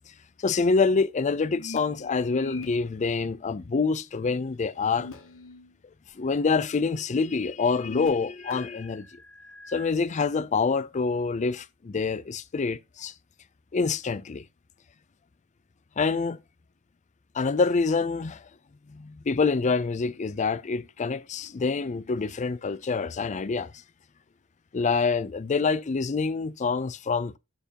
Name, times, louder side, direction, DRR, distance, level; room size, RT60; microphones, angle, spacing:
voice 1, 0.4-5.1 6.1-9.1 9.7-13.1 13.7-14.4 16.0-16.4 17.3-18.4 18.9-23.7 24.7-27.4, left 4 dB, 35° left, 0.4 m, -26 dB
sound 1, 1.4-2.7 4.8-5.7 6.1-6.2 7.6-9.9, left 3 dB, 70° left, 1.6 m, -43 dB
12.0 x 4.5 x 2.9 m
head